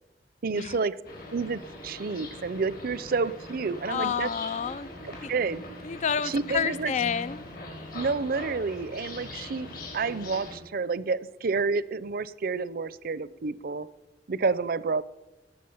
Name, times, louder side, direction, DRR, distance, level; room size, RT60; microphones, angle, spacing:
voice 1, 0.4-1.0 1.3-4.3 5.3-5.6 6.3-6.9 7.9-13.9 14.3-15.0, right 4 dB, 55° right, 0.6 m, -29 dB
sound 1, 1.0-10.6, left 1 dB, 55° left, 4.5 m, -42 dB
voice 2, 3.8-4.9 5.2-5.3 5.8-7.4, left 7 dB, 40° left, 0.4 m, -29 dB
19.0 x 7.2 x 7.2 m
head